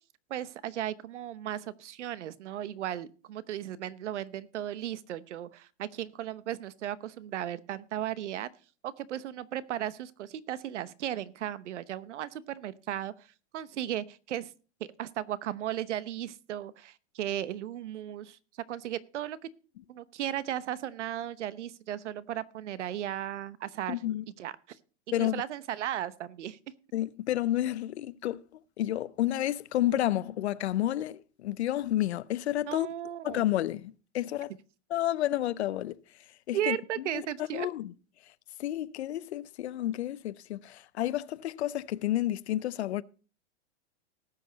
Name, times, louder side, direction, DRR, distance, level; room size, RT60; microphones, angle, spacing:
voice 1, 0.3-8.5 8.8-14.5 14.8-18.4 18.7-19.5 19.9-24.0 24.4-24.8 25.2-26.6 32.7-33.4 36.5-37.7, right 11 dB, 70° right, 1.0 m, -36 dB
voice 2, 23.9-24.3 25.1-25.4 26.9-28.4 28.8-32.9 33.2-34.5 34.9-36.0 36.5-36.8 37.5-37.9 38.6-43.0, left 13 dB, 65° left, 0.7 m, -30 dB
19.0 x 6.7 x 4.0 m
supercardioid pair, 175°, 36 cm